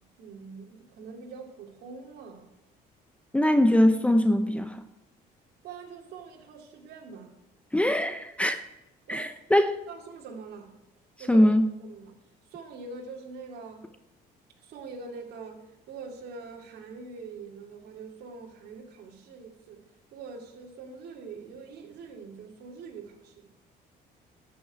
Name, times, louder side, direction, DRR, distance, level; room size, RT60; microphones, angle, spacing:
voice 1, 0.2-2.5 5.6-7.4 9.1-9.3 9.9-10.8 11.2-11.5 11.8-12.2 12.5-13.9 14.6-19.8 20.1-23.5, right 4 dB, 70° right, 1 dB, 2.6 m, -44 dB
voice 2, 3.3-4.8 7.7-8.6 9.1-9.8 11.3-11.7, left 1 dB, 5° left, 8 dB, 0.8 m, -22 dB
13.0 x 6.1 x 8.7 m, 0.90 s
cardioid pair, 110°, 17 cm